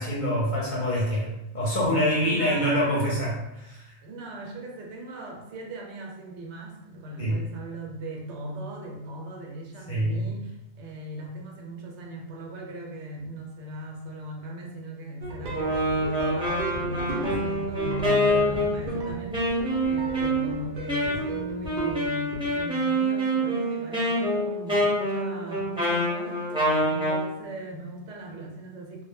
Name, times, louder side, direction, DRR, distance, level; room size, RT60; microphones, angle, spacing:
voice 1, 0.0-3.9 7.2-7.4 9.9-10.3, equal, 50° left, -5 dB, 0.7 m, -26 dB
voice 2, 2.2-3.1 4.0-19.5 19.8-29.0, right 1 dB, 80° right, 0 dB, 0.9 m, -39 dB
sound 1, 15.2-22.1 22.3-22.6, right 2 dB, 60° right, 0.6 m, -35 dB
Wind instrument woodwind instrument, 15.5-27.3, equal, 5° right, 0.6 m, -26 dB
2.1 x 2.1 x 3.4 m, 0.91 s
omnidirectional pair, 1.2 m